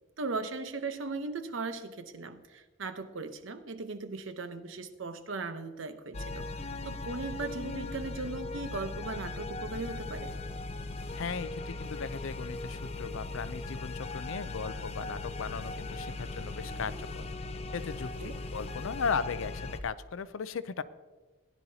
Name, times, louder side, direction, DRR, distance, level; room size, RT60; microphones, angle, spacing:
voice 1, 0.2-10.3 18.2-18.4, right 3 dB, 70° right, 9 dB, 0.8 m, -38 dB
sound 1, 6.1-19.8, left 2 dB, 30° left, 0.5 m, -39 dB
voice 2, 11.2-17.2 17.7-20.8, left 5 dB, 75° left, 15 dB, 0.5 m, -37 dB
16.5 x 10.5 x 2.8 m, 1.3 s
head